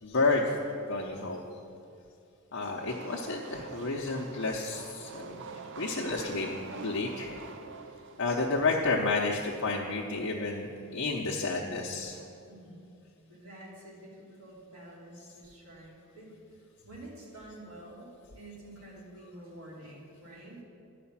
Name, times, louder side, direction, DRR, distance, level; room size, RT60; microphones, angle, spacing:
voice 1, 0.0-0.5 0.8-1.4 2.5-5.4 5.8-7.4 8.2-12.2, left 3 dB, 65° left, -2 dB, 0.8 m, -31 dB
sound 1, 2.9-8.3, right 4 dB, 65° right, 0.5 m, -44 dB
voice 2, 12.5-12.8 13.3-20.6, right 1 dB, 90° right, -4 dB, 2.8 m, -49 dB
11.0 x 5.0 x 7.2 m, 2.6 s
head